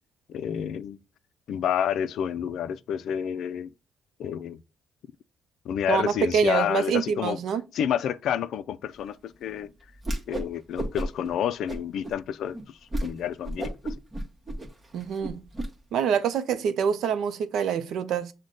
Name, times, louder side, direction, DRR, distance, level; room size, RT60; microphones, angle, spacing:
voice 1, 0.3-1.0 1.5-3.7 4.2-4.6 5.7-7.4 7.7-9.7 10.3-13.7, left 9 dB, 75° left, 0.3 m, -29 dB
voice 2, 5.9-7.6 14.9-15.4 15.9-18.3, right 7 dB, 75° right, 0.5 m, -26 dB
Whoosh swoosh swish, 10.0-10.5 10.8-11.3 11.7-12.2 12.5-12.6 12.9-13.1 13.4-15.7, right 1 dB, 30° right, 0.9 m, -32 dB
6.4 x 2.2 x 3.8 m
cardioid pair, 90°, 0 cm